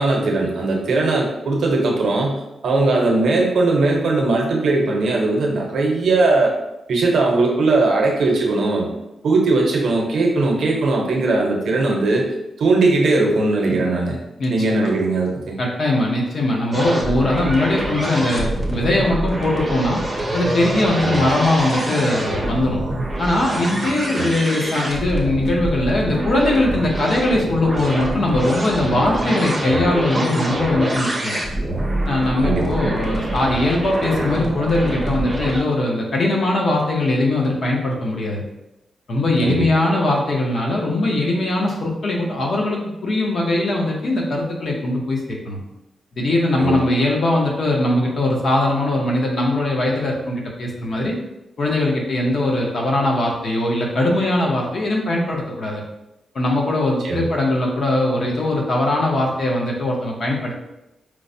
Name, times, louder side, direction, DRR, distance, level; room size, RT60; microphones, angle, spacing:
voice 1, 0.0-6.5 6.9-8.9 9.2-12.3 12.6-14.2 14.5-15.6 21.0-21.3 24.1-24.3 32.4-32.7 39.4-39.7 46.6-46.8 57.0-57.3, right 3 dB, 65° right, 0 dB, 0.7 m, -19 dB
voice 2, 14.4-14.9 15.6-20.0 20.3-22.8 23.2-31.4 32.0-38.4 39.1-45.6 46.2-51.2 51.6-55.8 56.3-60.5, left 1 dB, 45° left, -2 dB, 0.6 m, -20 dB
sound 1, 16.7-35.6, right 1 dB, 10° right, 0.6 m, -25 dB
4.5 x 2.0 x 2.6 m, 0.91 s
wide cardioid pair, 170°, 0 cm